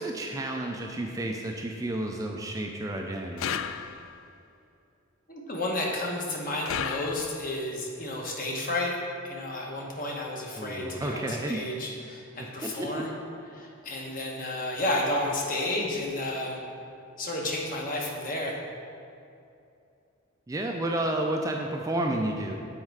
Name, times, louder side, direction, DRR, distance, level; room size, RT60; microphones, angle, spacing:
voice 1, 0.0-3.5 10.6-11.6 12.4-13.0 20.5-22.6, right 1 dB, 15° right, 2 dB, 0.3 m, -31 dB
sound 1, 3.4-4.3 6.7-7.6, left 8 dB, 70° left, 0.3 m, -34 dB
voice 2, 5.3-9.0 9.2-13.1 13.5-16.6 17.2-18.6, left 1 dB, 40° left, -1 dB, 1.0 m, -31 dB
7.5 x 4.4 x 4.7 m, 2.6 s
head